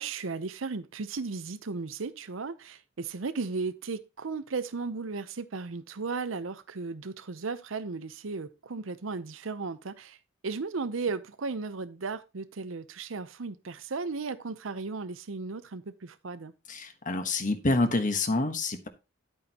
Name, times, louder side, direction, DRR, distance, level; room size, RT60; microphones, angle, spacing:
voice 1, 0.0-10.2 10.4-16.5, right 4 dB, 80° right, 0.7 m, -35 dB
voice 2, 16.7-18.9, left 2 dB, 40° left, 1.3 m, -27 dB
10.0 x 8.7 x 2.9 m
head